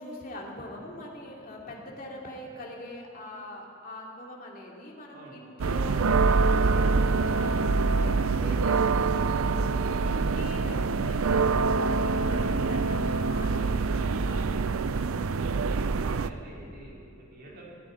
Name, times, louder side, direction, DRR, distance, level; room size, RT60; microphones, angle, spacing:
voice 1, 0.0-9.7 10.3-15.5 17.4-17.6, left 1 dB, 45° left, -1 dB, 2.7 m, -43 dB
sound 1, 5.6-16.3, right 4 dB, 85° right, 0.5 m, -25 dB
voice 2, 10.0-10.3 15.9-17.6, right 2 dB, 50° right, -5 dB, 4.1 m, -48 dB
17.0 x 8.5 x 9.9 m, 2.6 s
head